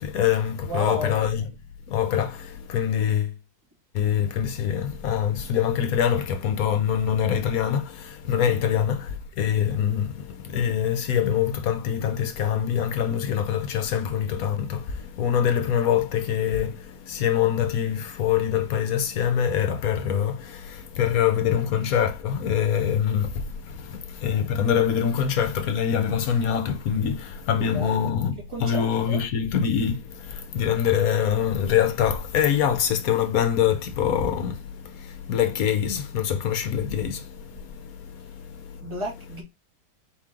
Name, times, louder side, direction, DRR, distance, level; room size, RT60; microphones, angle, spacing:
voice 1, 0.0-1.5 1.9-3.3 3.9-39.0, left 8 dB, 65° left, 1.2 m, -24 dB
voice 2, 0.7-1.2 8.6-8.8 27.7-28.0 28.5-29.2 38.8-39.4, equal, 20° right, 1.8 m, -33 dB
4.4 x 3.2 x 3.6 m
omnidirectional pair, 1.7 m